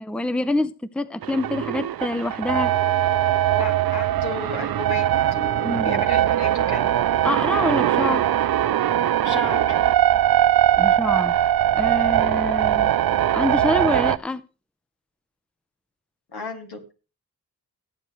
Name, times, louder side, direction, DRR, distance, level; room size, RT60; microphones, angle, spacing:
voice 1, 0.1-2.7 5.6-6.0 7.2-8.2 10.8-11.3 11.7-12.9 13.3-14.4, left 2 dB, 5° left, 0.7 m, -26 dB
sound 1, 1.2-14.2, right 12 dB, 65° right, 0.5 m, -21 dB
voice 2, 3.5-5.0 5.3-6.9 9.2-9.8 16.3-16.8, left 2 dB, 75° left, 2.5 m, -33 dB
17.5 x 7.7 x 3.2 m
cardioid pair, 40°, 39 cm